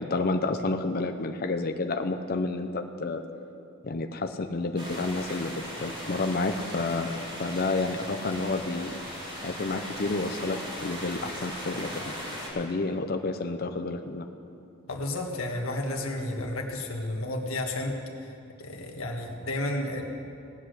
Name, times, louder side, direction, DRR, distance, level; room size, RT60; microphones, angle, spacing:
voice 1, 0.0-3.2 3.8-8.9 9.4-12.1 12.5-14.3, left 3 dB, 45° left, 6 dB, 0.6 m, -30 dB
sound 1, 4.8-12.5, equal, 25° right, 2.7 m, -38 dB
voice 2, 14.9-17.9 18.6-20.0, left 1 dB, 80° left, 1 dB, 1.6 m, -32 dB
18.0 x 8.0 x 6.5 m, 2.6 s
head